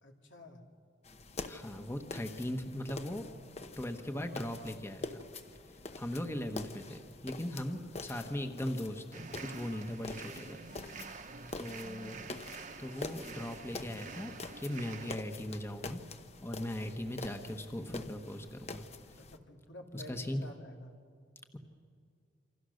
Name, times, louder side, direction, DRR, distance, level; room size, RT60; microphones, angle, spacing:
voice 1, 0.0-0.6 5.9-6.0 11.3-11.7 19.2-21.0, left 1 dB, 85° left, 3 dB, 2.5 m, -51 dB
sound 1, 1.0-19.4, left 3 dB, 35° left, 1.0 m, -46 dB
voice 2, 1.5-3.3 3.8-5.2 6.0-11.1 11.6-12.2 12.8-16.0 16.4-18.8 19.9-20.4, left 1 dB, 15° left, 6 dB, 1.2 m, -39 dB
sound 2, 9.1-15.2, right 4 dB, 45° right, 1.2 m, -47 dB
28.0 x 26.0 x 6.5 m, 2.3 s
head